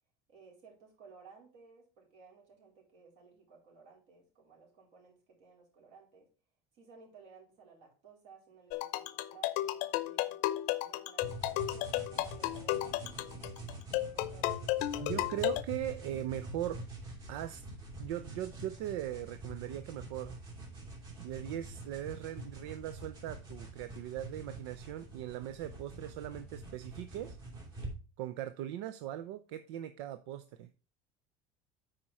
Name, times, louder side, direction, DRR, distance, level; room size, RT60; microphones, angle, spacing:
voice 1, 0.3-6.3 6.8-13.5 13.9-14.5 14.9-15.2, right 5 dB, 55° right, 4.2 m, -58 dB
sound 1, 8.7-15.6, left 15 dB, 65° left, 0.6 m, -34 dB
sound 2, 11.2-27.9, right 2 dB, 30° right, 3.1 m, -46 dB
voice 2, 15.0-16.8 17.3-17.6 18.0-20.4 21.2-27.4 28.2-30.7, right 12 dB, 80° right, 0.6 m, -39 dB
8.7 x 5.1 x 4.2 m
cardioid pair, 165°, 14 cm